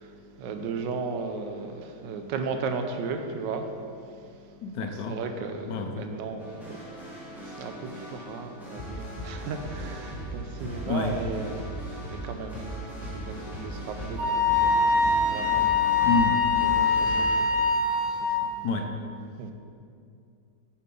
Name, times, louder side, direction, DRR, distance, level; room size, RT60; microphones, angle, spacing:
voice 1, 0.0-16.0 16.6-18.7 19.4-19.5, right 4 dB, 80° right, 6 dB, 1.3 m, -36 dB
voice 2, 4.6-5.2 5.7-6.2 10.9-11.1 16.0-16.4 18.6-18.9, left 3 dB, 75° left, 5 dB, 1.2 m, -28 dB
sound 1, 6.4-17.4, right 1 dB, ahead, 1.4 m, -38 dB
Wind instrument woodwind instrument, 14.2-18.4, left 4 dB, 55° right, 2.6 m, -23 dB
7.0 x 4.7 x 5.3 m, 2.4 s
omnidirectional pair, 2.0 m